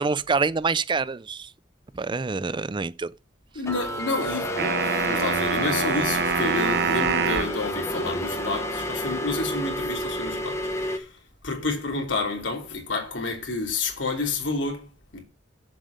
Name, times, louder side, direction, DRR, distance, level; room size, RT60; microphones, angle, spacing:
voice 1, 0.0-1.5 1.9-3.1, right 4 dB, 25° right, 0.4 m, -26 dB
voice 2, 3.5-11.1 11.4-15.2, left 3 dB, 90° left, 3.0 m, -30 dB
sound 1, 3.7-11.0, left 1 dB, 15° left, 1.2 m, -30 dB
sound 2, 4.6-7.6, right 6 dB, 60° right, 0.8 m, -25 dB
7.4 x 7.1 x 6.5 m
head